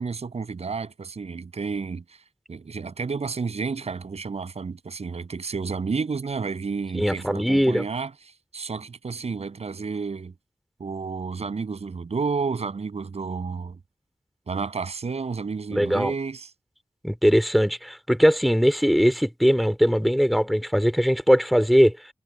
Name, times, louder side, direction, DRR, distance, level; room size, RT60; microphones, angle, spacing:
voice 1, 0.0-2.0 2.5-8.1 8.5-10.3 10.8-13.8 14.5-16.5, right 5 dB, 85° right, 7.8 m, -31 dB
voice 2, 6.9-7.8 15.7-16.1 17.0-21.9, equal, ahead, 3.2 m, -20 dB
wide cardioid pair, 75°, 11 cm